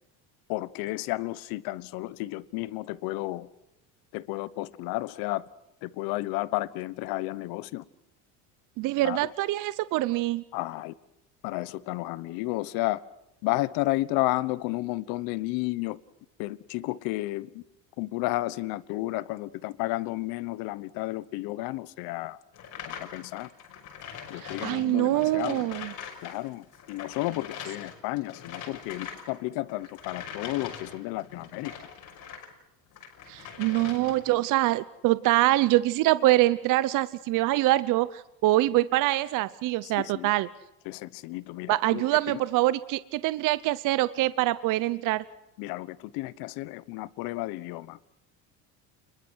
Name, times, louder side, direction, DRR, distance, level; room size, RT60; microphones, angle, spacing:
voice 1, 0.5-3.5 4.1-5.5 5.8-7.8 9.0-9.3 10.5-10.9 11.4-13.0 13.4-16.0 16.4-17.6 18.0-22.4 22.8-23.5 24.3-25.7 26.2-31.7 39.8-40.3 40.8-42.4 45.6-48.1, left 19 dB, 70° left, 1.2 m, -32 dB
voice 2, 8.8-10.4 24.4-25.9 33.3-40.5 41.7-45.2, right 17 dB, 55° right, 0.9 m, -24 dB
sound 1, 22.5-26.4 26.6-32.5 32.9-34.4, left 7 dB, 55° left, 6.0 m, -42 dB
29.0 x 22.0 x 6.3 m
cardioid pair, 130°, 37 cm